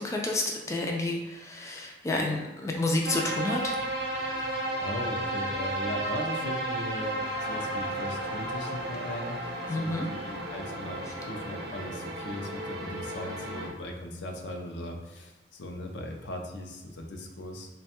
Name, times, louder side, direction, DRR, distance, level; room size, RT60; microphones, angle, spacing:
voice 1, 0.0-3.7 9.7-10.1, left 2 dB, 15° left, 0 dB, 0.3 m, -30 dB
sound 1, 3.0-13.7, right 1 dB, 60° right, 0.6 m, -33 dB
voice 2, 4.7-9.4 9.7-17.7, left 1 dB, 70° left, 2 dB, 0.5 m, -38 dB
3.3 x 2.2 x 4.2 m, 1.1 s
head